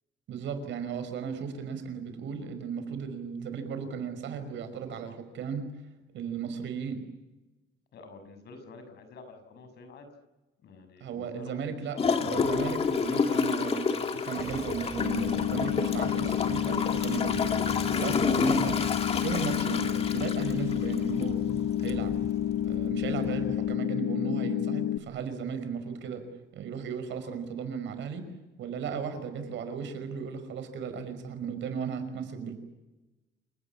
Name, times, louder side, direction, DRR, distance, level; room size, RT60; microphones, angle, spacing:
voice 1, 0.3-5.7 6.1-7.0 11.0-17.4 17.7-18.9 19.2-21.5 21.8-22.2 22.6-26.2 26.5-28.3 28.6-32.5, right 6 dB, 75° right, 9 dB, 5.4 m, -35 dB
voice 2, 7.9-10.1 10.6-11.6 11.9-12.1 18.1-18.4, left 3 dB, 60° left, 8 dB, 6.4 m, -48 dB
Gurgling / Toilet flush, 12.0-21.4 21.9-22.0, left 5 dB, 30° left, 1.8 m, -30 dB
sound 1, 14.4-23.8, right 3 dB, 15° right, 1.8 m, -42 dB
sound 2, 15.0-25.0, left 12 dB, 80° left, 0.9 m, -29 dB
28.5 x 18.0 x 9.9 m, 1.0 s
cardioid pair, 175°, 19 cm